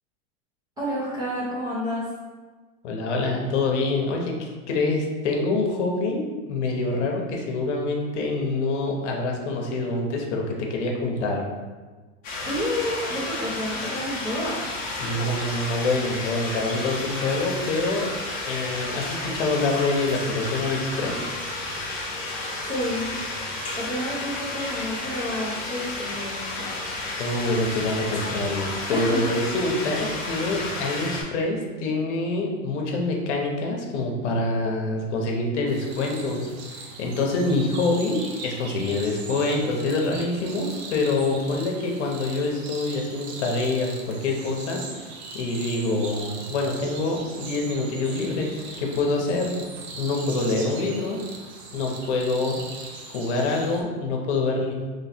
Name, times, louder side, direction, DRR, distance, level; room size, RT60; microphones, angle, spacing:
voice 1, 0.8-2.0 12.4-14.6 22.3-23.2 23.8-26.7 28.9-29.2, equal, 10° right, -10 dB, 0.6 m, -30 dB
voice 2, 2.8-11.4 15.0-18.1 18.5-21.3 27.2-36.5 37.0-44.8 45.3-48.5 48.8-49.6 50.0-51.2 51.7-52.6 53.1-54.7, left 2 dB, 65° left, 1 dB, 0.9 m, -26 dB
sound 1, 12.2-31.2, left 2 dB, 20° left, 0.8 m, -32 dB
sound 2, 35.7-53.8, right 4 dB, 55° right, 0.7 m, -40 dB
3.1 x 3.0 x 4.3 m, 1.3 s
supercardioid pair, 180°, 38 cm